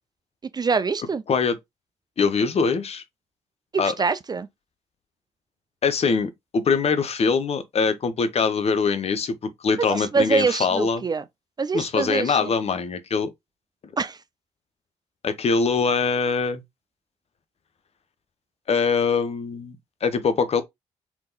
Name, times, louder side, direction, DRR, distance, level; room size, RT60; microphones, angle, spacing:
voice 1, 0.5-1.2 3.7-4.5 9.8-11.2 11.6-12.5 14.0-14.2, right 4 dB, 30° right, 0.4 m, -24 dB
voice 2, 2.2-3.0 3.8-3.9 5.8-11.0 11.7-13.3 15.2-16.6 18.7-20.6, left 5 dB, 45° left, 0.7 m, -23 dB
3.5 x 2.9 x 2.3 m
hypercardioid pair, 40°, 15 cm